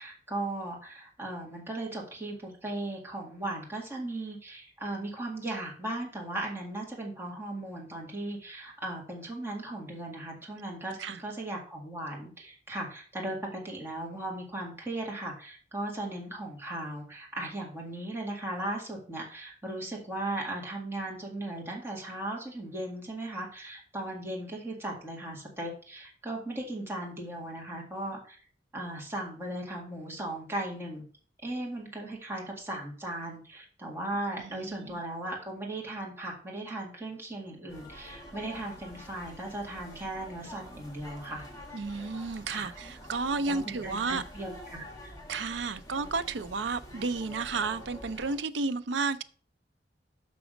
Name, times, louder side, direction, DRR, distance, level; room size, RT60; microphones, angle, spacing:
voice 1, 0.0-28.4 28.7-31.0 31.4-41.5 42.5-42.7 43.5-45.1, right 1 dB, 15° right, 1.8 m, -37 dB
voice 2, 34.4-35.0 41.7-44.2 45.3-49.2, right 4 dB, 75° right, 0.5 m, -32 dB
sound 1, 37.7-48.4, left 1 dB, 20° left, 1.5 m, -47 dB
6.1 x 6.0 x 5.0 m
head